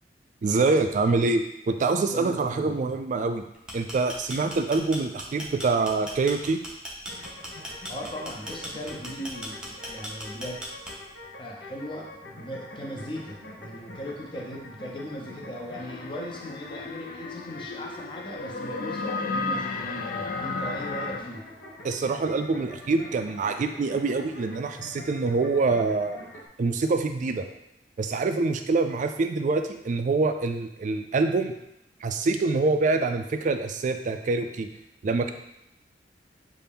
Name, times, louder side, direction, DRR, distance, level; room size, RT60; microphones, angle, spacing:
voice 1, 0.4-3.4 3.7-6.6 21.8-26.2 26.6-27.5 28.0-31.5 32.0-34.7 35.0-35.3, right 3 dB, 45° right, 7 dB, 0.3 m, -25 dB
voice 2, 2.1-2.7 7.9-10.7 11.4-21.4, equal, 30° left, -1 dB, 0.7 m, -38 dB
sound 1, 3.5-11.2, equal, 5° right, 0.6 m, -38 dB
sound 2, 7.1-26.5, left 1 dB, 70° left, 0.9 m, -45 dB
sound 3, 15.8-21.2, left 3 dB, 50° left, 0.4 m, -33 dB
5.6 x 2.6 x 3.4 m, 0.83 s
head